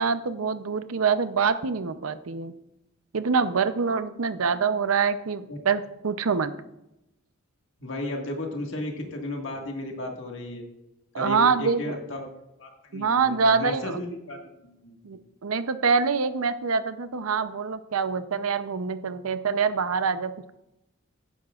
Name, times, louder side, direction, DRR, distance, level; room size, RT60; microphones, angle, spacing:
voice 1, 0.0-2.5 3.1-6.5 11.1-12.0 12.9-14.0 15.0-20.3, right 5 dB, 85° right, 12 dB, 0.6 m, -25 dB
voice 2, 7.8-10.6 11.1-12.3 12.6-15.0, left 1 dB, 60° left, 1 dB, 1.8 m, -34 dB
15.5 x 11.5 x 2.4 m, 0.91 s
head